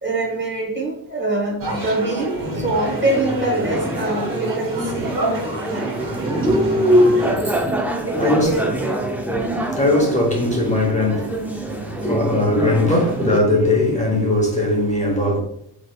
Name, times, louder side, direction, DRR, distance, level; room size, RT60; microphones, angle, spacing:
voice 1, 0.0-5.1 5.6-5.9 7.4-7.6 8.0-9.0, right 2 dB, 25° right, 1.0 m, -24 dB
sound 1, 1.6-7.4, right 1 dB, 50° right, 1.2 m, -28 dB
sound 2, 2.8-13.4, equal, 5° right, 0.3 m, -23 dB
voice 2, 7.7-8.5 9.5-15.4, left 2 dB, 15° left, 0.8 m, -20 dB
3.1 x 2.9 x 2.2 m
cardioid pair, 85°, 43 cm